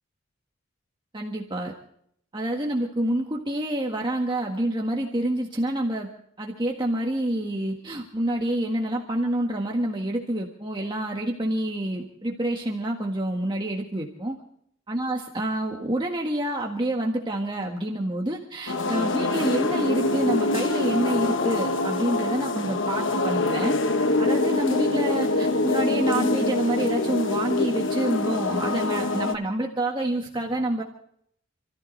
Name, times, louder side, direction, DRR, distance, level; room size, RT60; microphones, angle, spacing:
voice 1, 1.1-1.7 2.3-6.1 6.4-14.4 14.9-23.8 24.2-30.8, right 1 dB, 25° right, 0 dB, 1.6 m, -27 dB
sound 1, 18.7-29.3, left 2 dB, 70° left, 1.1 m, -25 dB
29.0 x 14.5 x 3.3 m, 0.68 s
head